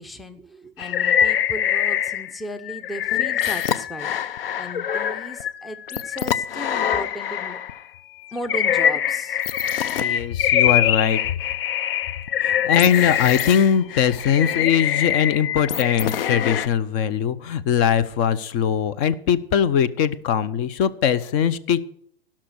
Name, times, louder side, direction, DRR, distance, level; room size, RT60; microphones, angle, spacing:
voice 1, 0.0-7.6 8.3-9.4, equal, ahead, 10 dB, 0.6 m, -36 dB
sound 1, 0.8-2.4 2.6-7.8 8.3-16.7, left 9 dB, 70° left, 0.8 m, -24 dB
voice 2, 10.0-11.2 12.4-21.8, left 8 dB, 45° left, 14 dB, 0.9 m, -21 dB
16.5 x 6.0 x 6.4 m, 0.64 s
hypercardioid pair, 115°, 29 cm